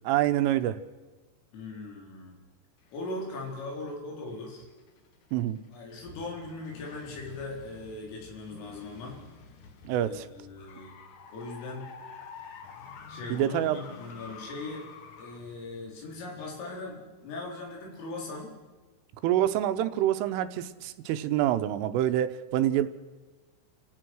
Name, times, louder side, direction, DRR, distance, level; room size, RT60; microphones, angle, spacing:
voice 1, 0.0-0.8 5.3-5.6 9.8-10.3 13.3-13.8 19.2-22.9, right 12 dB, 85° right, 11 dB, 3.5 m, -26 dB
voice 2, 1.5-2.4 2.9-4.7 5.7-9.2 10.0-10.9 11.3-11.9 13.1-14.8 15.2-18.5, left 2 dB, 85° left, -1 dB, 7.1 m, -39 dB
sound 1, 2.8-3.9 4.3-16.9, left 5 dB, 55° left, 2.4 m, -49 dB
30.0 x 16.0 x 6.3 m, 1.3 s
omnidirectional pair, 5.7 m